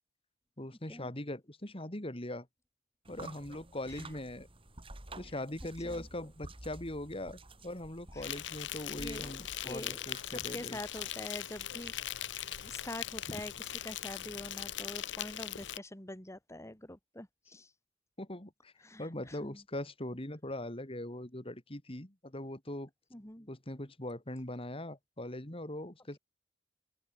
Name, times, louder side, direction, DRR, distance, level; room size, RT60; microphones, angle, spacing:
voice 1, 0.6-2.5 3.1-4.5 5.2-10.8 13.3-13.4 18.2-18.7 19.0-22.9 23.5-26.2, left 1 dB, 30° left, 3.3 m, -41 dB
sound 1, 3.0-14.7, right 2 dB, 30° right, 4.4 m, -52 dB
Insect, 8.2-15.8, left 12 dB, 90° left, 0.8 m, -40 dB
voice 2, 8.9-9.3 9.6-10.0 10.2-11.9 12.6-17.7 18.8-19.6 23.1-23.5, left 1 dB, 15° left, 2.7 m, -45 dB
open air
head